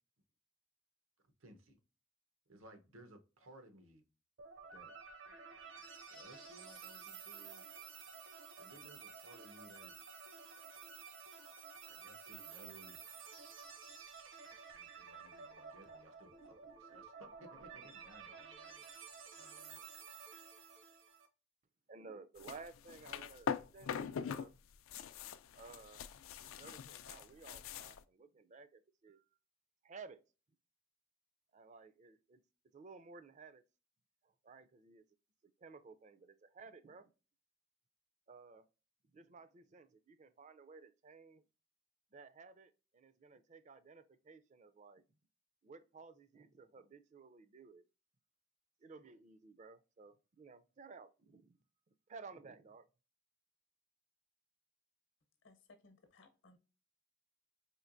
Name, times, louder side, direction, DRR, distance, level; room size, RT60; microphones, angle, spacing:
voice 1, 1.4-1.8 2.5-4.0 4.7-4.9 6.1-7.7 8.6-9.9 11.9-13.1 14.7-18.9 19.4-19.8, right 1 dB, 90° right, 0.9 m, -60 dB
sound 1, 4.4-21.3, right 6 dB, 65° right, 0.7 m, -53 dB
voice 2, 21.9-24.5 25.5-26.0 26.4-29.2 29.8-30.2 31.5-32.4 32.7-33.6 34.2-35.0 35.4-37.1 38.3-38.7 39.1-41.4 42.1-45.0 45.6-47.9 48.8-51.6 51.9-52.9, right 4 dB, 35° right, 0.4 m, -56 dB
sound 2, 22.4-24.5 24.7-28.0, left 7 dB, 80° left, 0.4 m, -43 dB
voice 3, 55.4-56.6, left 3 dB, 65° left, 0.8 m, -63 dB
4.4 x 2.9 x 2.5 m
head